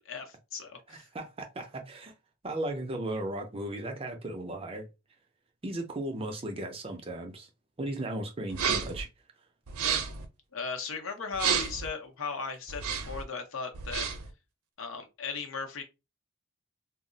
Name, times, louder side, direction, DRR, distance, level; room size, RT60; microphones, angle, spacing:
voice 1, 0.0-1.1 10.5-14.1 14.8-15.8, left 5 dB, 65° left, 0.6 m, -37 dB
voice 2, 0.9-2.1 2.4-4.9 5.6-7.5 7.8-9.1, right 1 dB, 25° right, 0.4 m, -36 dB
sound 1, 8.5-9.0 9.7-10.2 11.3-11.9 12.7-13.2 13.7-14.3, right 7 dB, 75° right, 0.5 m, -31 dB
2.3 x 2.0 x 3.8 m
head